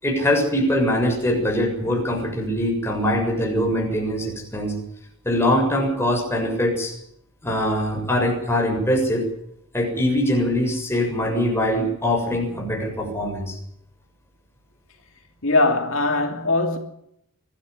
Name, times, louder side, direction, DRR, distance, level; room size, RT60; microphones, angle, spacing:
voice 1, 0.0-4.7 5.2-6.9 7.4-9.2 9.7-13.6, left 1 dB, 10° left, 7.0 m, -22 dB
voice 2, 15.4-16.8, left 2 dB, 70° left, 3.0 m, -20 dB
24.5 x 14.0 x 9.9 m
head